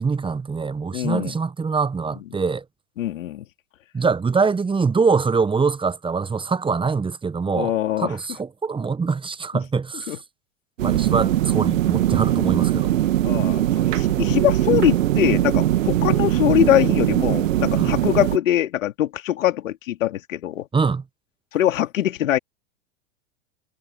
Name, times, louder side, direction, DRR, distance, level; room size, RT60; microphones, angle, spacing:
voice 1, 0.0-2.6 3.9-10.1 10.8-13.0 17.8-17.9 20.7-21.0, right 5 dB, 10° right, 1.2 m, -23 dB
voice 2, 0.9-1.4 3.0-3.5 7.5-8.2 10.1-10.2 13.2-20.7 21.5-22.4, left 12 dB, 70° left, 3.0 m, -22 dB
sound 1, 10.8-18.4, right 13 dB, 70° right, 2.2 m, -21 dB
hypercardioid pair, 95°, 40 cm